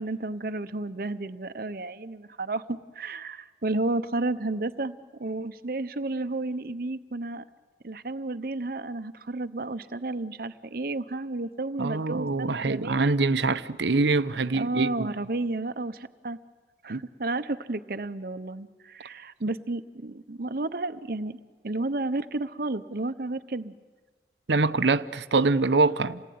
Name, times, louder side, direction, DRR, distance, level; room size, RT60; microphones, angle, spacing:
voice 1, 0.0-7.4 7.8-13.1 14.5-16.4 16.8-21.4 21.6-23.7, right 2 dB, 55° right, 0.9 m, -32 dB
voice 2, 11.8-15.1 16.9-17.0 24.5-26.2, right 3 dB, 85° right, 0.8 m, -24 dB
28.0 x 19.0 x 9.4 m
head